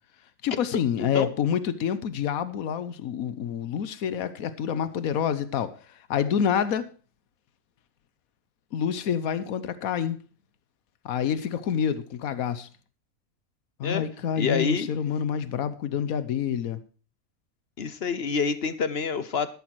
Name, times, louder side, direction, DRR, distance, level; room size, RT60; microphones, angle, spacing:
voice 1, 0.4-5.8 6.1-6.9 8.7-10.2 11.0-12.7 13.8-16.8, left 8 dB, 85° left, 1.3 m, -27 dB
voice 2, 1.0-1.3 13.8-14.0 14.4-14.9 17.8-19.5, left 5 dB, 50° left, 1.0 m, -27 dB
13.0 x 11.0 x 4.6 m
omnidirectional pair, 1.5 m